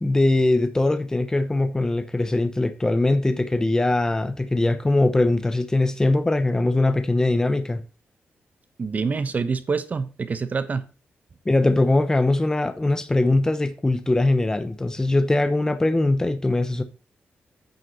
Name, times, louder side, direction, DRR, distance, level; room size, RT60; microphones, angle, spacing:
voice 1, 0.0-7.8 11.5-16.8, left 2 dB, 15° left, 0.8 m, -21 dB
voice 2, 8.8-10.8, right 4 dB, 40° right, 1.0 m, -26 dB
9.0 x 6.3 x 4.1 m
cardioid pair, 100°, 4 cm